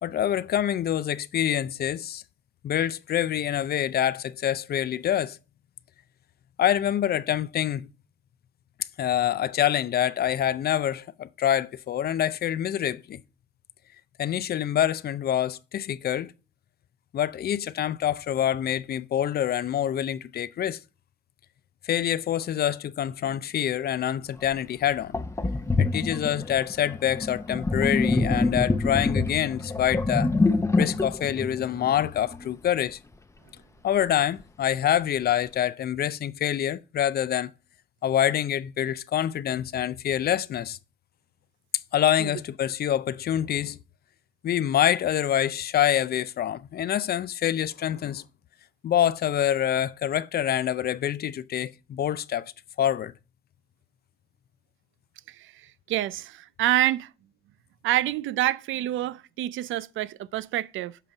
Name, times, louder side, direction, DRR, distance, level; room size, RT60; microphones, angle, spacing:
voice 1, 0.0-2.2 2.6-5.4 6.6-7.9 9.0-13.2 14.2-16.3 17.1-20.8 21.8-25.2 25.8-30.3 30.8-33.0 33.8-37.5 38.0-40.8 41.9-43.8 44.4-48.2 48.8-52.4 52.8-53.1, left 10 dB, 50° left, 0.5 m, -26 dB
Sink (filling or washing), 24.4-24.5 25.1-32.4, left 3 dB, 15° left, 0.7 m, -26 dB
voice 2, 55.3-57.1 57.8-61.0, right 14 dB, 80° right, 0.4 m, -27 dB
7.4 x 5.3 x 3.9 m
cardioid pair, 90°, 20 cm